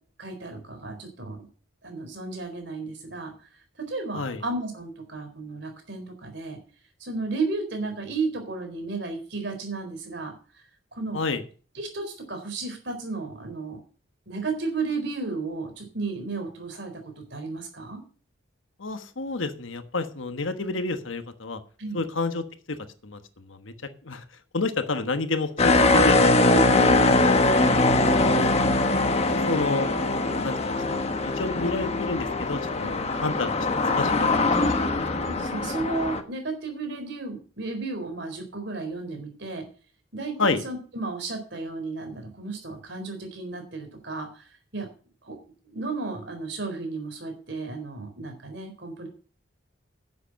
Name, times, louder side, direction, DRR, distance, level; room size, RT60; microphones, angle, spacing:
voice 1, 0.2-1.5 1.8-3.3 3.9-6.6 7.0-10.3 10.9-11.2 11.8-13.8 14.3-16.9 17.3-18.0 21.8-22.0 25.9-26.0 26.5-27.0 34.5-34.7 35.3-39.7 40.1-44.4 44.7-44.9 45.2-45.4 45.7-49.1, right 3 dB, 60° right, 5 dB, 4.1 m, -33 dB
voice 2, 18.8-21.6 21.9-22.8 23.0-23.7 24.0-24.2 24.5-25.8 26.0-26.6 27.2-28.8 29.3-29.9 30.4-30.5 30.9-35.0 40.4-40.6, left 3 dB, 80° left, 9 dB, 1.3 m, -30 dB
sound 1, 25.6-36.2, left 2 dB, 30° left, 1.1 m, -22 dB
10.5 x 8.1 x 6.4 m, 0.40 s
head